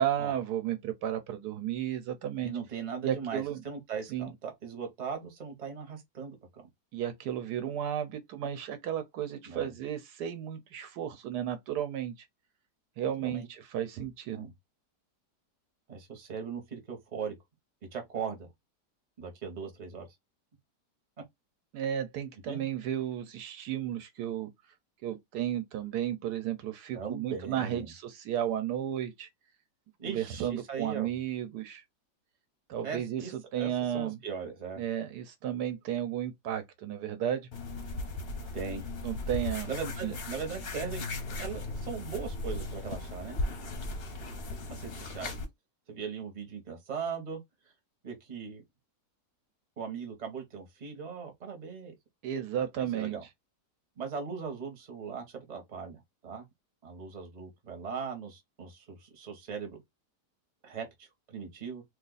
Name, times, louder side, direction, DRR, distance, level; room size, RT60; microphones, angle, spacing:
voice 1, 0.0-2.5 3.0-3.6 4.1-4.3 6.9-12.3 13.0-14.5 21.7-24.5 25.0-29.3 30.0-31.8 32.7-34.2 34.8-37.5 39.0-39.7 40.0-40.1 52.2-53.2, right 10 dB, 75° right, 1.1 m, -33 dB
voice 2, 2.4-6.7 9.5-9.7 13.2-13.5 14.3-14.5 15.9-17.3 17.9-18.5 19.2-20.1 22.5-22.6 26.9-27.9 30.0-31.1 32.8-33.3 33.6-34.8 38.5-38.8 39.7-43.4 44.7-45.3 45.9-47.4 48.0-48.6 49.8-51.9 52.8-53.2 54.0-56.5 56.8-59.8 60.6-61.8, right 6 dB, 30° right, 0.9 m, -39 dB
sound 1, 37.5-45.5, left 2 dB, 50° left, 0.7 m, -37 dB
2.8 x 2.4 x 3.9 m
omnidirectional pair, 1.8 m